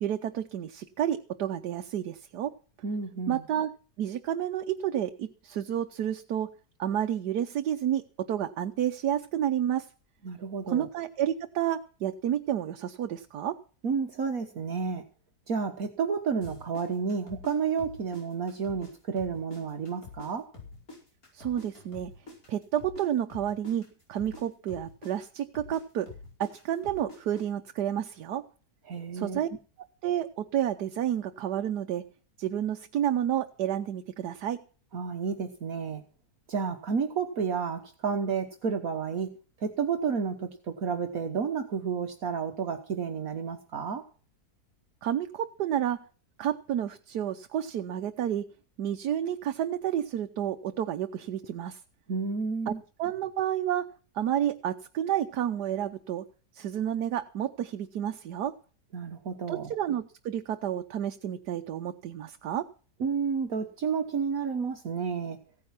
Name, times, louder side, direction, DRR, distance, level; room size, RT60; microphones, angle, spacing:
voice 1, 0.0-2.5 3.3-3.7 4.0-6.5 6.8-9.9 10.7-13.6 21.3-22.1 22.5-26.1 26.4-28.4 29.1-29.5 29.8-32.0 32.4-34.6 45.0-46.0 46.4-48.4 48.8-51.8 52.7-52.8 53.0-53.9 54.1-56.2 56.5-58.5 59.5-62.7, right 10 dB, 80° right, 7 dB, 1.4 m, -30 dB
voice 2, 2.8-3.4 10.2-10.9 13.8-15.0 15.5-20.5 28.9-29.4 34.9-36.0 36.5-39.3 39.6-44.0 52.1-52.8 58.9-59.7 63.0-65.4, right 6 dB, 60° right, 6 dB, 1.6 m, -31 dB
sound 1, 16.4-18.9 19.2-23.0 23.3-27.4, left 3 dB, 60° left, 5.5 m, -46 dB
16.0 x 9.8 x 5.9 m, 0.39 s
omnidirectional pair, 1.7 m